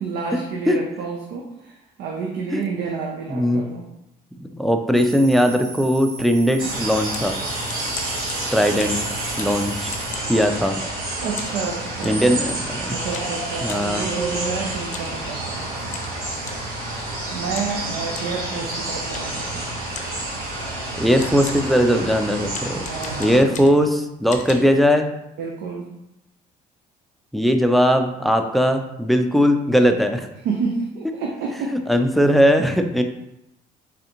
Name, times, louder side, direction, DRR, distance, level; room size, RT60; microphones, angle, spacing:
voice 1, 0.0-3.8 11.2-12.4 12.9-15.9 17.3-19.7 22.8-23.5 25.4-25.9 30.4-31.8, right 5 dB, 80° right, 0 dB, 0.6 m, -29 dB
voice 2, 3.3-3.6 4.4-7.4 8.5-9.0 9.4-9.9 10.3-10.8 12.0-12.9 13.6-14.1 21.0-22.8 23.2-25.1 27.3-30.3 31.9-33.0, equal, ahead, 6 dB, 0.3 m, -19 dB
sound 1, 4.9-10.2, right 3 dB, 40° right, 1.1 m, -37 dB
sound 2, 6.6-23.4, right 2 dB, 60° right, 1.3 m, -29 dB
sound 3, 7.1-11.0 11.4-12.3 13.1-13.9 14.8-15.2 15.5-15.6 15.9-16.7 17.5-17.8 18.1-18.4 19.1-19.4 19.9-20.3 20.9-21.0 21.2-21.8 22.5-23.9 24.3-24.5, left 5 dB, 45° left, 0.6 m, -38 dB
3.7 x 3.4 x 2.9 m, 0.85 s
cardioid pair, 110°, 17 cm